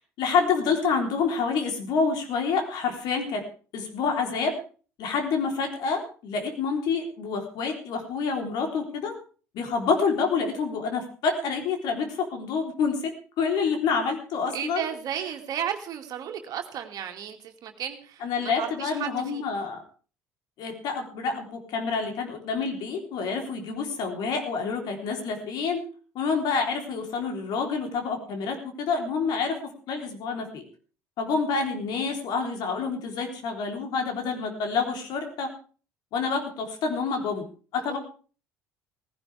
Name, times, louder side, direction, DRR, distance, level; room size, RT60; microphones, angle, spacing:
voice 1, 0.2-3.4 3.7-4.5 5.0-9.1 9.5-13.1 13.4-14.9 18.2-19.8 20.6-25.8 26.2-29.6 29.9-30.6 31.2-35.5 36.1-37.4 37.7-38.0, left 5 dB, 60° left, 4 dB, 3.7 m, -28 dB
voice 2, 14.5-19.5 37.8-38.0, right 9 dB, 55° right, 4 dB, 2.3 m, -34 dB
17.5 x 16.0 x 3.5 m, 0.38 s
hypercardioid pair, 60°, 8 cm